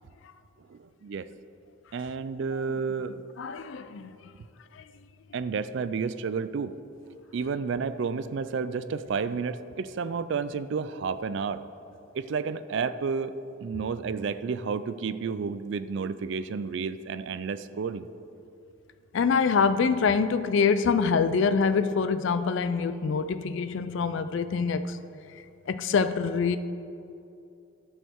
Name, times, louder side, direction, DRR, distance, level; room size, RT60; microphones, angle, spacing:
voice 1, 0.7-1.3 1.9-3.2 5.3-6.7 7.3-11.6 12.1-13.3 13.6-18.1, right 5 dB, 60° right, 0.3 m, -31 dB
voice 2, 3.4-4.3 4.7-4.9 19.1-25.0 25.3-26.6, left 5 dB, 60° left, 0.4 m, -25 dB
11.0 x 6.5 x 4.5 m
head